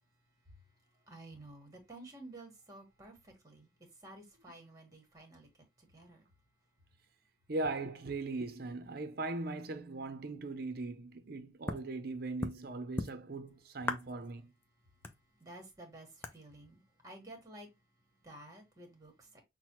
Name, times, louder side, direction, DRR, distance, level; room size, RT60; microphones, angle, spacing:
voice 1, 0.1-6.8 14.6-19.4, right 1 dB, 15° right, 1.3 m, -54 dB
voice 2, 7.5-14.5, right 2 dB, 50° right, 0.6 m, -39 dB
sound 1, 11.7-11.9 12.4-12.6 13.0-13.5 13.8-14.3 14.6-14.7 15.0-15.8 16.2-16.4, left 2 dB, 10° left, 0.4 m, -38 dB
5.9 x 2.1 x 3.0 m
head